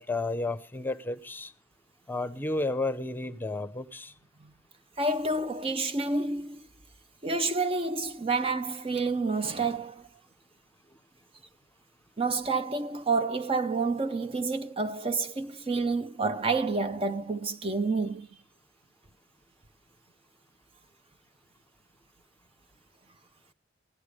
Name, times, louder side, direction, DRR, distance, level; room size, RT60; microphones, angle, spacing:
voice 1, 0.0-1.5 2.1-4.1, left 2 dB, 10° left, 0.8 m, -32 dB
voice 2, 5.0-6.6 7.2-10.0 12.2-18.3, right 3 dB, 30° right, 0.6 m, -29 dB
16.0 x 11.5 x 5.0 m
head